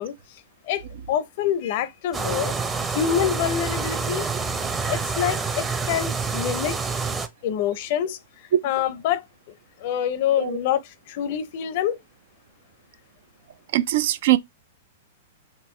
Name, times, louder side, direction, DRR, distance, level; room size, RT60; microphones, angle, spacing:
voice 1, 0.0-2.5 2.9-4.3 4.9-6.8 7.4-8.2 8.6-9.2 9.8-12.0, left 9 dB, 55° left, 0.6 m, -26 dB
sound 1, 2.1-7.3, right 4 dB, 15° right, 0.7 m, -27 dB
voice 2, 13.7-14.4, right 15 dB, 60° right, 0.4 m, -21 dB
4.4 x 2.9 x 3.1 m
hypercardioid pair, 115°, 0 cm